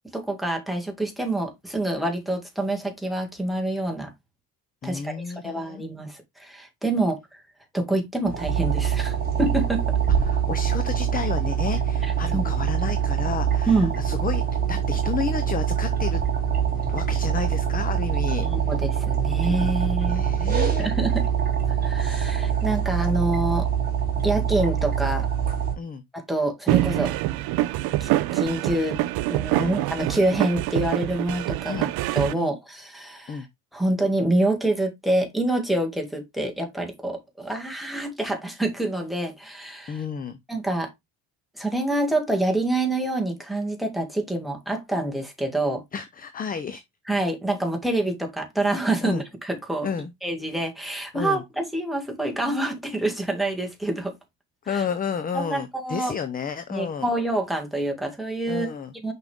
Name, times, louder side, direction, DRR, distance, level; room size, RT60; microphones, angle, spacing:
voice 1, 0.1-4.1 4.8-7.4 7.7-9.8 12.3-12.5 13.7-13.9 18.4-20.2 20.8-21.2 21.8-23.7 24.2-25.3 26.1-27.1 28.0-29.0 29.3-31.9 32.1-33.5 33.7-40.0 40.5-40.9 41.6-45.8 47.1-49.9 50.2-54.1 54.7-54.8 55.3-56.1 56.7-58.7 59.0-59.1, right 2 dB, ahead, 2.0 m, -26 dB
voice 2, 4.8-5.8 10.2-14.4 14.7-16.2 16.7-18.5 20.1-20.9 25.8-26.0 29.6-29.8 31.7-31.9 32.3-32.5 33.3-33.5 39.9-40.4 45.9-46.8 49.0-49.2 49.8-50.1 51.1-51.4 54.6-57.1 58.5-58.9, left 6 dB, 25° left, 0.6 m, -31 dB
sound 1, 8.2-25.7, right 8 dB, 25° right, 3.2 m, -24 dB
sound 2, 26.7-32.3, right 15 dB, 85° right, 0.7 m, -25 dB
6.2 x 5.3 x 3.5 m
cardioid pair, 145°, 37 cm